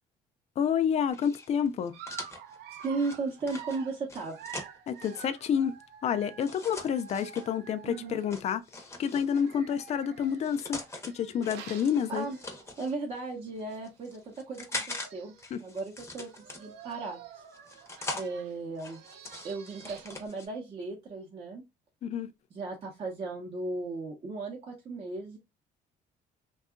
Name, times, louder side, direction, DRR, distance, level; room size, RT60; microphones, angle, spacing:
voice 1, 0.6-2.0 4.9-5.7 6.0-8.6 9.0-12.3 15.5-15.6 22.0-22.3, left 8 dB, 40° left, 0.4 m, -29 dB
sound 1, 1.1-5.2 6.4-7.5 8.3-9.5 10.2-11.1 11.4-12.9 13.6-15.1 15.4-16.9 17.5-18.3 18.8-20.5, left 2 dB, 15° left, 0.7 m, -42 dB
Dog, 1.9-8.5 9.3-12.9 13.3-13.5 13.8-13.9 14.7-14.8 15.0-15.6 16.2-20.3, right 8 dB, 80° right, 0.5 m, -49 dB
voice 2, 2.8-4.4 7.8-8.2 12.1-12.4 12.8-15.3 15.6-17.4 18.1-19.0 19.4-21.6 22.5-25.4, right 3 dB, 35° right, 0.7 m, -36 dB
2.7 x 2.3 x 2.4 m
cardioid pair, 110°, 17 cm